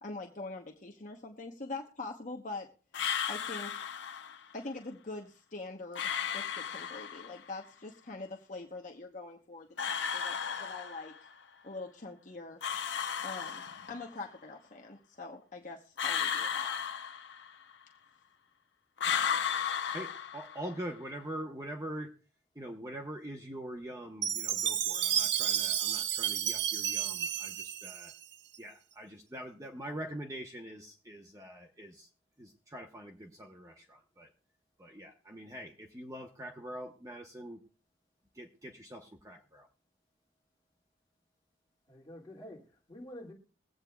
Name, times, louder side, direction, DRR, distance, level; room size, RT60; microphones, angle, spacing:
voice 1, 0.0-2.7 3.3-3.9 4.5-11.1 11.6-12.6 13.2-16.7, left 3 dB, 40° left, 0.9 m, -44 dB
sound 1, 2.9-4.4 5.9-7.4 9.8-11.3 12.6-14.2 16.0-17.7 19.0-20.8, left 8 dB, 65° left, 0.6 m, -34 dB
voice 2, 19.9-22.1 22.5-28.1 28.6-32.1 32.4-34.3 34.8-37.6 38.3-39.7, right 1 dB, 15° right, 0.9 m, -44 dB
Chime, 24.2-28.6, right 9 dB, 65° right, 0.5 m, -31 dB
voice 3, 41.9-43.3, left 1 dB, 20° left, 2.2 m, -48 dB
22.0 x 8.1 x 2.3 m
head